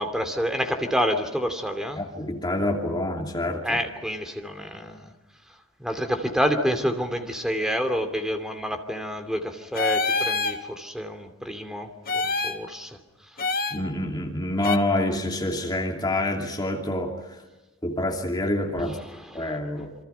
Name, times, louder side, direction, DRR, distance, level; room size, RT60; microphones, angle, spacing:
voice 1, 0.0-2.0 3.6-5.1 5.8-13.0 18.8-19.6, equal, ahead, 6 dB, 2.6 m, -28 dB
voice 2, 2.0-3.8 13.7-17.1 17.8-19.0 19.3-20.0, left 1 dB, 20° left, 2 dB, 2.7 m, -27 dB
sound 1, 9.8-10.6 12.1-12.6 13.4-13.8 14.6-14.8, left 3 dB, 40° left, 1.7 m, -25 dB
27.5 x 25.5 x 5.7 m, 1.1 s
head